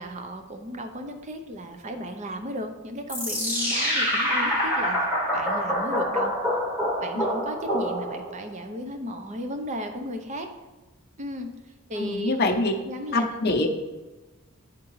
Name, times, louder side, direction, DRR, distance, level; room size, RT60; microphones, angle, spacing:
voice 1, 0.0-5.0 5.3-6.3 7.0-10.5 11.2-11.5 11.9-12.3 12.8-13.6, equal, 30° right, 5 dB, 0.6 m, -35 dB
sound 1, 3.1-8.4, equal, 10° right, 1.3 m, -26 dB
voice 2, 12.0-12.7 13.1-13.7, left 2 dB, 45° left, 2 dB, 0.7 m, -24 dB
10.5 x 3.6 x 3.1 m, 1.2 s
head